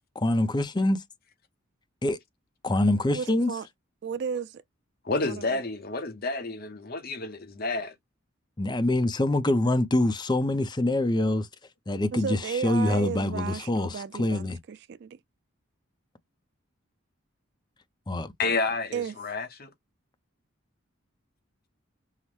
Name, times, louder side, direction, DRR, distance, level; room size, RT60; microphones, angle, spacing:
voice 1, 0.2-1.0 2.0-2.2 2.6-3.5 8.6-11.5 11.9-14.6 18.1-18.3, left 1 dB, 20° left, 0.5 m, -25 dB
voice 2, 3.1-3.7 4.0-4.6 5.2-5.6 12.1-15.2 18.9-19.1, right 6 dB, 55° right, 0.3 m, -34 dB
voice 3, 5.0-7.9 18.4-19.7, left 3 dB, 45° left, 0.8 m, -30 dB
5.6 x 2.1 x 3.1 m
head